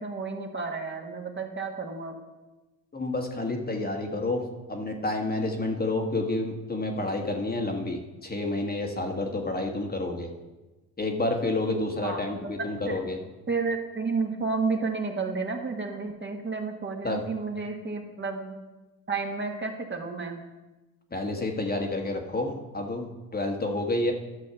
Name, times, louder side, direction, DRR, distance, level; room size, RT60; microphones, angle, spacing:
voice 1, 0.0-2.2 12.0-12.4 12.9-13.0 13.5-18.5 19.1-20.4, right 4 dB, 30° right, 2 dB, 1.8 m, -31 dB
voice 2, 2.9-4.4 4.7-10.3 11.0-13.2 17.0-17.2 21.1-24.1, left 2 dB, 25° left, 2 dB, 1.6 m, -29 dB
11.5 x 6.2 x 5.8 m, 1.1 s
supercardioid pair, 70°, 40 cm